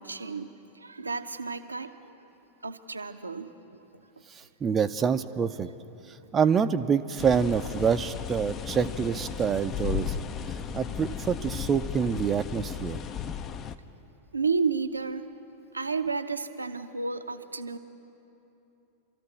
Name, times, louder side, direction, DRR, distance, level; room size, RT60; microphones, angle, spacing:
voice 1, 0.0-2.1 2.6-3.8 14.3-15.3 15.7-17.8, right 4 dB, 80° right, 8 dB, 0.6 m, -32 dB
voice 2, 4.3-5.7 6.1-10.2 10.7-13.0, right 6 dB, 20° right, 9 dB, 0.4 m, -26 dB
sound 1, 7.2-13.8, left 8 dB, 30° left, 0.5 m, -35 dB
26.5 x 13.5 x 3.1 m, 3.0 s
figure-of-eight pair, 90°, 0 cm